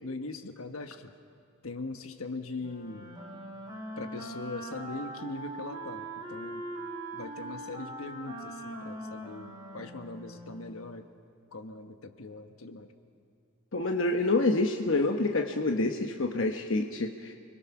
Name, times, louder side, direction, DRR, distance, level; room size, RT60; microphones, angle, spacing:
voice 1, 0.0-1.1 1.6-3.1 4.0-6.7 7.1-11.1 11.5-12.9, left 3 dB, 80° left, 7 dB, 1.3 m, -41 dB
Wind instrument woodwind instrument, 2.6-10.8, right 1 dB, 20° right, 3.7 m, -41 dB
voice 2, 13.7-17.3, left 2 dB, 60° left, 4 dB, 1.0 m, -27 dB
29.5 x 22.0 x 6.0 m, 2.5 s
head